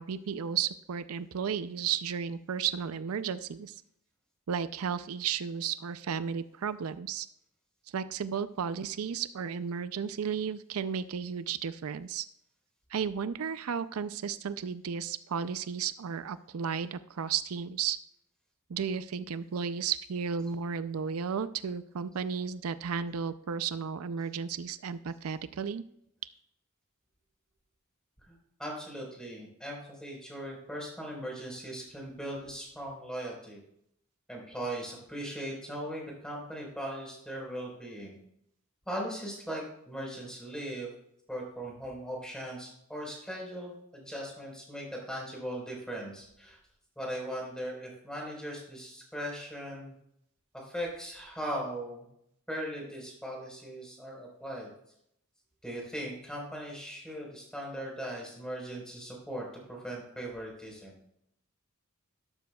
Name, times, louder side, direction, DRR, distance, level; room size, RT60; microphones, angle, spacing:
voice 1, 0.0-3.8 4.5-7.3 7.9-12.3 12.9-18.0 18.7-25.8, right 7 dB, 85° right, 13 dB, 0.5 m, -33 dB
voice 2, 28.3-33.6 34.3-38.2 38.9-40.9 41.3-46.6 47.0-49.9 50.7-52.1 52.5-54.7 55.6-60.9, equal, 5° left, -2 dB, 4.3 m, -39 dB
12.5 x 12.0 x 2.3 m, 0.73 s
head